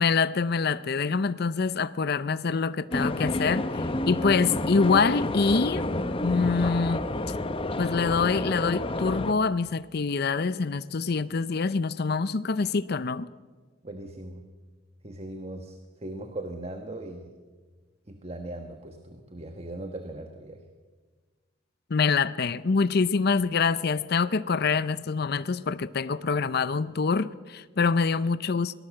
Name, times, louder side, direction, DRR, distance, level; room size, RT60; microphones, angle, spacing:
voice 1, 0.0-5.8 6.2-7.1 7.8-13.3 21.9-28.7, left 4 dB, 55° left, 15 dB, 0.6 m, -25 dB
sound 1, 2.9-9.3, left 1 dB, 30° left, 1.0 m, -29 dB
voice 2, 13.8-14.5 15.0-17.4 18.1-20.6, right 1 dB, 35° right, 6 dB, 1.4 m, -39 dB
23.0 x 18.5 x 7.7 m, 1.4 s
head